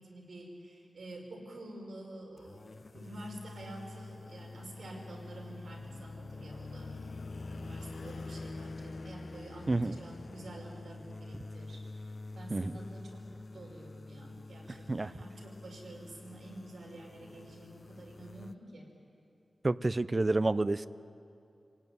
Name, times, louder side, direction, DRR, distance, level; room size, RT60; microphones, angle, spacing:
voice 1, 0.0-2.6 2.9-7.0 7.5-18.9, right 1 dB, 90° right, 0 dB, 5.3 m, -49 dB
sound 1, 2.4-18.5, left 2 dB, 45° left, 0.7 m, -48 dB
sound 2, 5.5-11.2, left 3 dB, 75° left, 0.9 m, -45 dB
voice 2, 19.6-20.9, right 2 dB, 35° right, 16 dB, 0.6 m, -29 dB
29.0 x 18.5 x 9.5 m, 2.7 s
wide cardioid pair, 105°, 0 cm